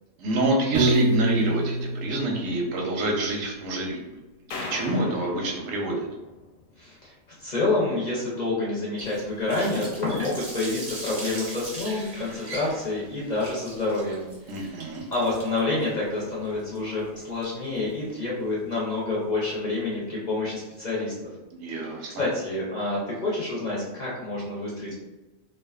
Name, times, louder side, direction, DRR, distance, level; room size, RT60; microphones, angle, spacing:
voice 1, 0.2-4.0 4.7-6.1 14.5-15.1 21.5-22.2, right 2 dB, 90° right, 0 dB, 1.0 m, -27 dB
Piano, 0.7-3.0, right 1 dB, 5° right, 0.6 m, -26 dB
sound 1, 4.5-6.8, left 2 dB, 90° left, 1.0 m, -38 dB
voice 2, 6.8-7.1 7.4-14.3 14.5-14.7 15.1-21.1 22.2-24.9, left 2 dB, 45° left, -6 dB, 0.6 m, -28 dB
Water tap faucet, 9.0-17.9, right 2 dB, 40° right, 0.6 m, -40 dB
2.4 x 2.3 x 2.3 m, 1.1 s
omnidirectional pair, 1.3 m